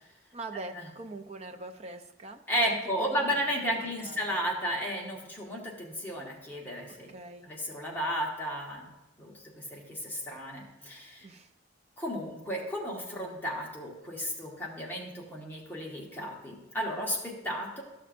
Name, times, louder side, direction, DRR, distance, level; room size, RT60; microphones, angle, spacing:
voice 1, 0.3-4.4 6.9-7.5 11.2-11.5, right 2 dB, 35° right, 7 dB, 0.5 m, -43 dB
voice 2, 2.5-7.1 7.4-11.3 12.0-17.8, equal, 10° left, -3 dB, 1.2 m, -33 dB
12.5 x 6.5 x 2.5 m, 1.1 s
head